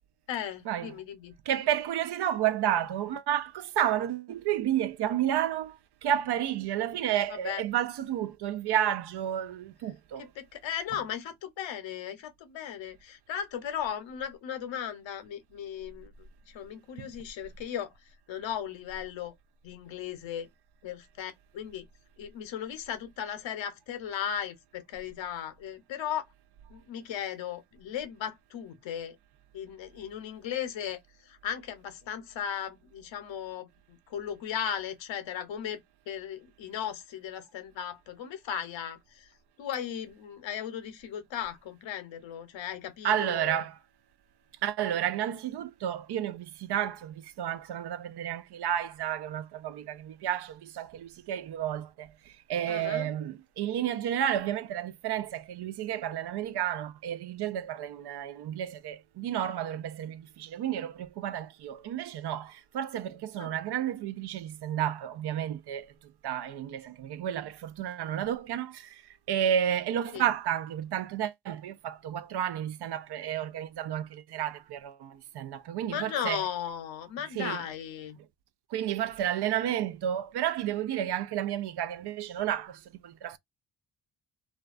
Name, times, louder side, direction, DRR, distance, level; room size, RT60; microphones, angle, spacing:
voice 1, 0.3-1.3 7.3-7.6 10.2-16.1 16.5-17.9 18.3-19.3 19.6-20.5 20.8-21.8 22.2-26.2 26.7-29.2 29.5-31.0 31.3-35.8 36.1-39.3 39.6-43.6 52.7-53.1 63.4-63.6 70.1-70.2 75.9-78.2, left 9 dB, 70° left, 0.8 m, -36 dB
voice 2, 1.5-10.3 17.0-17.1 43.0-43.8 44.6-65.9 66.2-69.0 69.3-76.4 77.3-77.6 78.7-83.4, right 10 dB, 60° right, 0.5 m, -31 dB
2.3 x 2.2 x 2.3 m
supercardioid pair, 45°, 47 cm